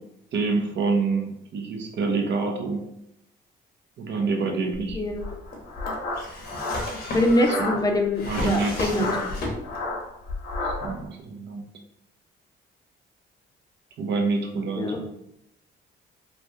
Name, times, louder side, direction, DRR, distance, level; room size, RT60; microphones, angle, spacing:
voice 1, 0.3-2.8 4.0-5.0 7.5-7.7 8.2-9.1 10.6-11.6 14.0-15.0, right 4 dB, 60° right, 2 dB, 0.7 m, -27 dB
Drawer open or close, 4.7-9.9 10.2-11.0, left 2 dB, 55° left, 0.9 m, -33 dB
voice 2, 4.9-5.4 7.1-9.1 14.8-15.0, left 1 dB, 20° left, 3 dB, 0.6 m, -24 dB
sound 1, 5.2-7.8 8.8-10.9, left 2 dB, 85° left, 0.9 m, -31 dB
3.2 x 2.2 x 2.6 m, 0.80 s
cardioid pair, 90°, 20 cm